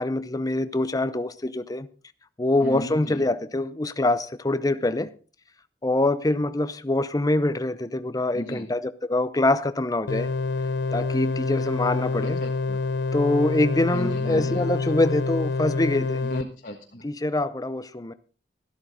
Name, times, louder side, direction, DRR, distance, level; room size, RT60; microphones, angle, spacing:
voice 1, 0.0-1.9 2.4-5.1 5.8-10.3 10.9-12.4 13.1-16.2 17.0-18.1, left 2 dB, 20° left, 0.6 m, -24 dB
voice 2, 2.6-3.3 8.3-8.6 12.2-12.8 13.9-14.7 16.2-17.1, left 1 dB, 50° left, 1.5 m, -35 dB
sound 1, 10.1-16.4, left 4 dB, 80° left, 0.5 m, -27 dB
13.0 x 13.0 x 3.7 m
head